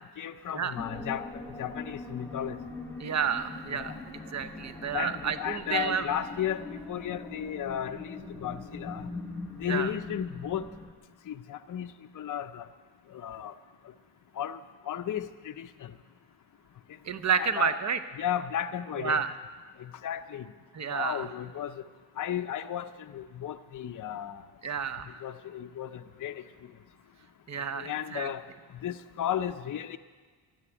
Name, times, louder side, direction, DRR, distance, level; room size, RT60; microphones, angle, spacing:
voice 1, 0.2-1.2 1.6-2.6 3.7-3.9 4.9-8.0 8.4-9.1 9.6-10.7 11.3-11.9 12.2-12.7 13.1-13.5 14.4-14.6 14.9-15.9 17.4-17.8 18.2-19.2 19.8-20.4 20.9-21.7 22.2-24.4 25.2-26.4 27.7-28.4 28.8-30.0, left 10 dB, 40° left, 8 dB, 0.6 m, -34 dB
sound 1, 0.8-10.9, left 3 dB, 5° left, 1.3 m, -41 dB
voice 2, 3.0-6.1 9.7-9.9 17.0-18.0 19.0-19.3 20.7-21.3 24.6-25.2 27.5-28.3, right 7 dB, 35° right, 11 dB, 0.7 m, -30 dB
13.0 x 8.1 x 9.7 m, 1.5 s
cardioid pair, 115°, 48 cm